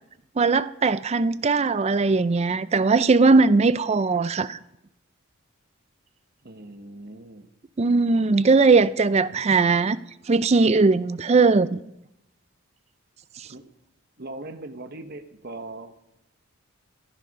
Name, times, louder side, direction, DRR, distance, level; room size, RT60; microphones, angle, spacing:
voice 1, 0.4-4.6 7.8-10.0 10.3-11.8 13.4-13.5, right 4 dB, 30° right, 0.4 m, -19 dB
voice 2, 6.4-7.5 9.3-9.5 13.5-13.6 14.2-15.9, right 2 dB, 45° right, 1.1 m, -40 dB
14.5 x 11.0 x 5.3 m
head